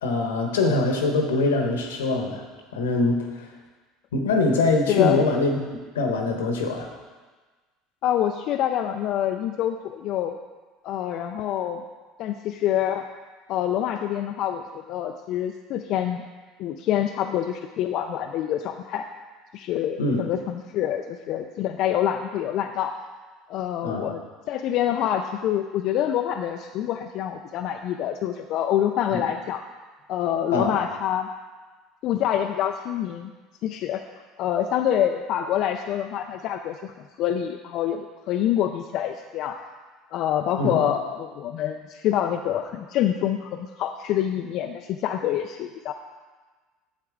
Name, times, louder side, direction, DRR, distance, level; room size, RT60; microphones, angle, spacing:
voice 1, 0.0-2.4 2.7-3.5 4.1-5.6 5.9-6.9 20.0-20.2 23.8-24.1 29.1-29.2 30.5-30.8 40.6-40.8, left 3 dB, 90° left, 3 dB, 1.2 m, -23 dB
voice 2, 4.9-5.2 8.0-10.4 10.8-11.8 12.2-13.1 13.5-16.2 16.6-19.1 19.5-22.9 23.5-24.2 24.5-29.6 30.1-31.3 32.0-33.3 33.6-34.0 34.4-39.6 40.1-45.9, left 10 dB, 60° left, 5 dB, 0.4 m, -26 dB
8.6 x 7.5 x 3.6 m, 1.3 s
hypercardioid pair, 80°, 0 cm